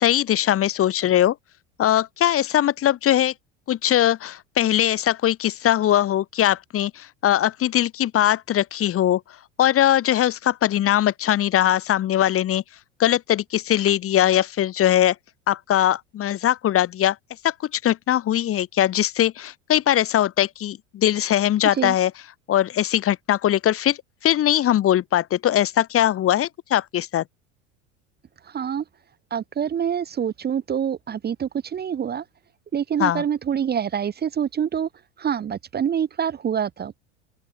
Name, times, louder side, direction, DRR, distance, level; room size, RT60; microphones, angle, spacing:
voice 1, 0.0-1.4 1.8-3.3 3.7-9.2 9.6-12.6 13.0-15.2 15.5-17.2 17.4-22.1 22.5-24.0 24.2-27.2 33.0-33.2, left 12 dB, 35° left, 1.7 m, -21 dB
voice 2, 28.5-28.8 29.3-32.2 32.7-34.9 35.2-36.9, right 8 dB, 25° right, 1.1 m, -26 dB
open air
hypercardioid pair, 80°, 37 cm